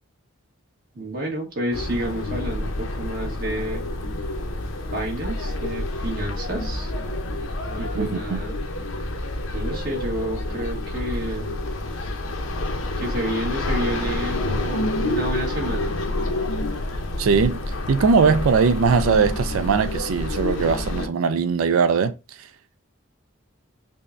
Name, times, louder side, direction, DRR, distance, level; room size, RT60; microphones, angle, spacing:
voice 1, 0.9-3.8 4.9-6.9 7.8-8.5 9.5-11.6 13.0-15.9, right 1 dB, 45° right, 1.3 m, -29 dB
sound 1, 1.7-21.1, left 1 dB, 75° left, 0.6 m, -28 dB
voice 2, 7.9-8.4 17.2-17.6 17.9-22.1, right 5 dB, 85° right, 0.4 m, -20 dB
5.3 x 2.1 x 2.5 m
head